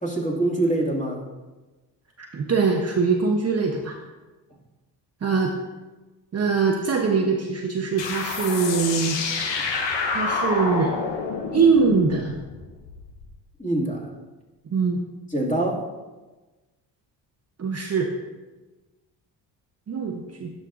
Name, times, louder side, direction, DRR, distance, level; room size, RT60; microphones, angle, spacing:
voice 1, 0.0-1.2 13.6-14.1 15.3-15.9, right 1 dB, 15° left, -2 dB, 2.0 m, -24 dB
voice 2, 2.2-4.0 5.2-5.5 6.3-9.2 10.1-10.9 11.5-12.3 14.7-15.0 17.6-18.1 19.9-20.5, right 5 dB, 30° right, 1 dB, 0.8 m, -22 dB
sound 1, 8.0-13.3, left 4 dB, 65° left, 1.0 m, -28 dB
11.0 x 5.3 x 2.5 m, 1.2 s
supercardioid pair, 60°, 47 cm